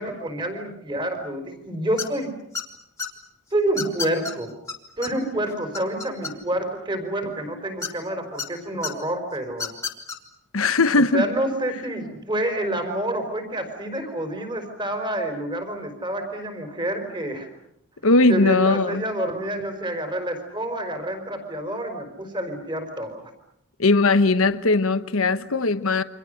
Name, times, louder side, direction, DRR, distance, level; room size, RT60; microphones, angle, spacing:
voice 1, 0.0-2.3 3.5-4.5 5.0-9.7 11.1-17.5 18.3-23.3, right 1 dB, 20° right, 4.7 m, -28 dB
sound 1, 2.0-2.2 2.5-3.1 3.8-4.3 4.7-4.8 5.0-5.1 5.5-6.6 7.8-8.5 8.8-8.9 9.5-10.2, left 5 dB, 15° left, 2.5 m, -30 dB
voice 2, 10.5-11.3 18.0-19.0 23.8-26.0, left 3 dB, 75° left, 1.1 m, -19 dB
29.5 x 25.5 x 6.6 m
head